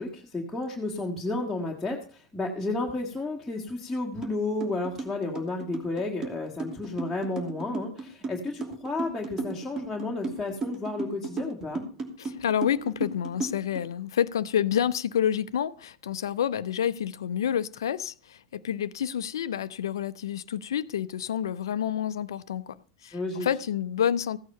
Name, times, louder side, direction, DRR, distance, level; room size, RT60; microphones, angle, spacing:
voice 1, 0.0-11.8 23.1-23.5, left 2 dB, 5° left, 1.9 m, -32 dB
sound 1, 4.2-4.3 4.6-13.8, right 3 dB, 25° right, 2.8 m, -34 dB
voice 2, 12.2-22.8 23.0-24.4, left 9 dB, 65° left, 0.6 m, -28 dB
15.5 x 8.7 x 5.5 m
figure-of-eight pair, 85°, 2 cm